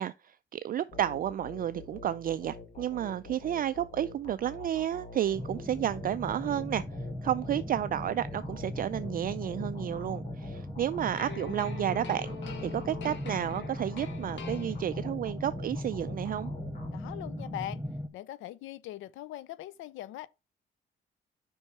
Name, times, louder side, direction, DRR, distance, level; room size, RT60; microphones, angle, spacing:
voice 1, 0.0-6.8 7.2-12.4 12.6-16.5, right 11 dB, 45° right, 0.4 m, -31 dB
sound 1, 0.9-17.5, left 3 dB, 40° left, 2.5 m, -47 dB
sound 2, 5.3-18.1, left 1 dB, ahead, 0.6 m, -38 dB
sound 3, 11.1-15.2, left 5 dB, 70° left, 1.8 m, -44 dB
voice 2, 16.9-17.8 18.1-20.3, left 14 dB, 85° left, 0.5 m, -41 dB
5.4 x 4.4 x 4.7 m
cardioid pair, 90°, 20 cm